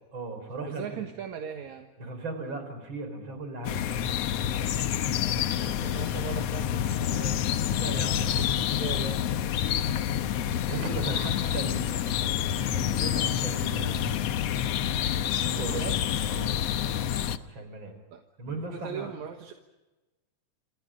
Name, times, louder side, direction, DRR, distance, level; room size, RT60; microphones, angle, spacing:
voice 1, 0.1-1.0 2.0-4.2 7.8-8.6 10.7-14.3 15.5-15.9 16.3-16.6 17.4-17.9 18.4-19.1, right 2 dB, 40° right, 8 dB, 5.3 m, -37 dB
voice 2, 0.7-1.9 5.1-7.8 8.4-9.4 15.5-16.0 18.1-19.5, right 7 dB, 70° right, 5 dB, 2.7 m, -40 dB
sound 1, 3.6-17.4, left 10 dB, 65° left, 1.8 m, -28 dB
28.5 x 26.5 x 5.2 m, 1.1 s
omnidirectional pair, 3.5 m